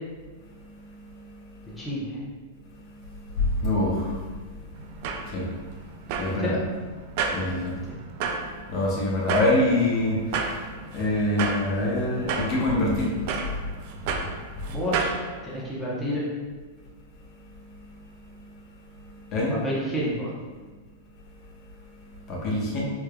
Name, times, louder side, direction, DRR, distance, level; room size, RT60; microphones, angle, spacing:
voice 1, 0.4-1.8 2.7-6.6 7.0-7.9 8.3-14.7 15.4-15.6 17.2-19.6 21.3-22.9, left 1 dB, 40° left, -4 dB, 0.8 m, -28 dB
voice 2, 1.8-2.2 6.3-6.5 14.7-15.1 15.4-16.2 19.3-20.3, equal, 5° left, -7 dB, 0.8 m, -30 dB
sound 1, 4.7-15.2, right 5 dB, 55° right, 0.4 m, -32 dB
3.5 x 3.2 x 2.3 m, 1.4 s
hypercardioid pair, 140°, 0 cm